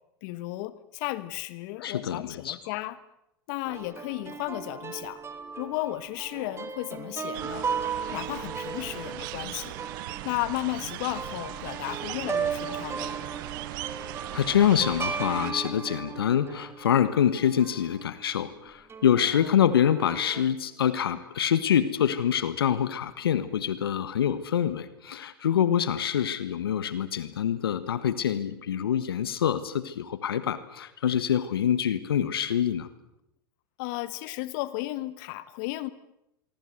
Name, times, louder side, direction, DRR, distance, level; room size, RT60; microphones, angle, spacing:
voice 1, 0.2-3.0 3.5-5.2 5.6-7.7 8.1-9.8 10.2-13.1 33.8-35.9, left 18 dB, 55° left, 16 dB, 1.4 m, -34 dB
voice 2, 1.8-2.6 14.3-32.9, left 9 dB, 80° left, 14 dB, 1.5 m, -25 dB
sound 1, 3.7-18.0 18.9-20.4, right 6 dB, 20° right, 2.6 m, -36 dB
sound 2, 7.3-15.5, right 17 dB, 60° right, 1.4 m, -39 dB
24.5 x 24.0 x 7.9 m, 0.83 s
hypercardioid pair, 95°, 12 cm